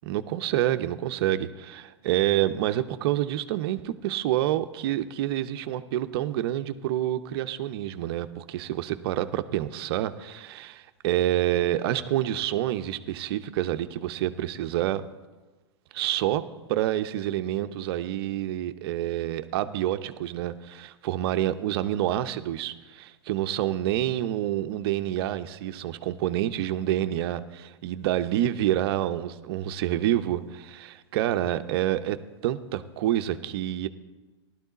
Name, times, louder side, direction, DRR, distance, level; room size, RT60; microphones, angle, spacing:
voice 1, 0.1-15.0 15.9-33.9, right 13 dB, 60° right, 10 dB, 0.6 m, -28 dB
15.0 x 12.0 x 4.0 m, 1.2 s
hypercardioid pair, 115°, 15 cm